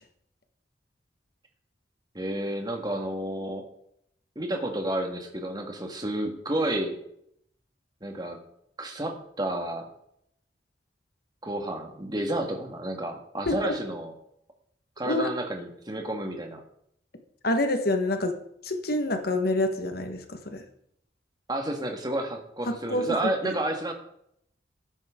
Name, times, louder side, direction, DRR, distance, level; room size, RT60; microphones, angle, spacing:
voice 1, 2.1-3.7 4.4-7.0 8.0-8.4 8.8-9.9 11.4-14.1 15.0-16.6 21.5-23.9, right 1 dB, 25° right, 3 dB, 1.8 m, -31 dB
voice 2, 17.4-18.3 18.6-20.6 22.7-23.1, left 1 dB, 60° left, 6 dB, 1.5 m, -27 dB
13.5 x 11.0 x 3.8 m, 0.72 s
head